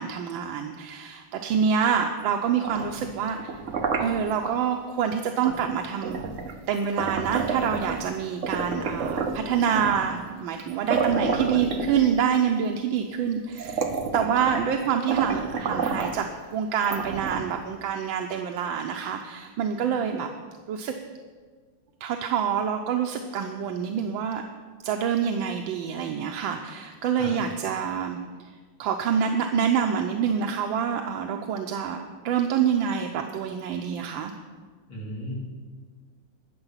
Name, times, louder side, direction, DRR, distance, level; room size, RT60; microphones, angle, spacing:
voice 1, 0.0-3.6 4.0-6.3 6.7-13.9 14.1-16.3 16.5-20.3 20.7-20.9 22.0-24.4 24.8-28.5 28.8-32.0 32.2-34.3, right 7 dB, 85° right, 4 dB, 1.5 m, -26 dB
sound 1, 2.5-4.6 5.4-5.6 6.0-8.1 8.4-10.1 10.6-10.7 10.9-12.4 13.1-13.2 13.5-14.8 15.1-16.2 16.8-17.6, right 4 dB, 50° right, 1.1 m, -30 dB
voice 2, 34.9-35.3, equal, 85° left, -5 dB, 3.9 m, -35 dB
20.0 x 6.9 x 5.7 m, 1.6 s
omnidirectional pair, 2.1 m